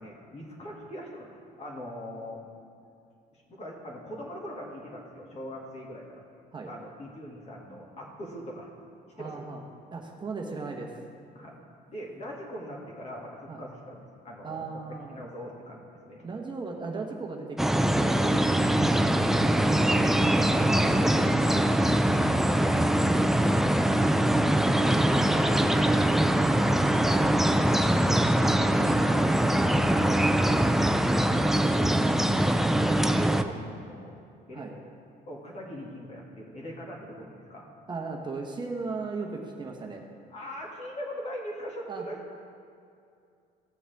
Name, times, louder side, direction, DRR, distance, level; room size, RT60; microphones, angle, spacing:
voice 1, 0.0-2.4 3.3-6.1 6.7-8.7 9.2-9.5 11.3-11.6 11.9-16.2 20.5-21.7 24.2-27.4 27.9-31.2 31.6-34.2 34.5-34.7 35.3-37.7 40.3-42.4, equal, 40° left, -2 dB, 2.2 m, -41 dB
voice 2, 9.2-9.6 9.9-11.0 13.5-13.6 14.4-15.3 16.2-20.5 22.7-22.9 27.4-27.7 31.4-31.6 34.5-34.7 37.9-40.0 41.9-42.0, right 4 dB, 25° right, 1 dB, 1.0 m, -37 dB
sound 1, 17.6-33.4, right 1 dB, ahead, 0.4 m, -23 dB
15.0 x 7.1 x 3.5 m, 2.4 s
cardioid pair, 110°, 17 cm